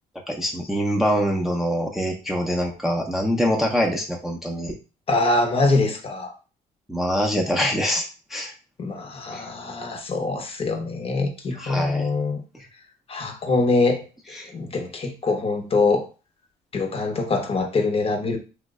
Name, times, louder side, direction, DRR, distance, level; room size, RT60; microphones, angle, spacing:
voice 1, 0.3-4.7 6.9-8.0 8.3-8.5 9.3-9.5 11.6-12.1 14.3-14.5, equal, ahead, 0 dB, 0.5 m, -24 dB
voice 2, 5.1-6.3 8.8-12.4 13.1-14.0 14.5-16.1 16.7-18.4, left 3 dB, 35° left, 3 dB, 0.7 m, -23 dB
3.0 x 2.0 x 3.5 m, 0.34 s
cardioid pair, 110°, 17 cm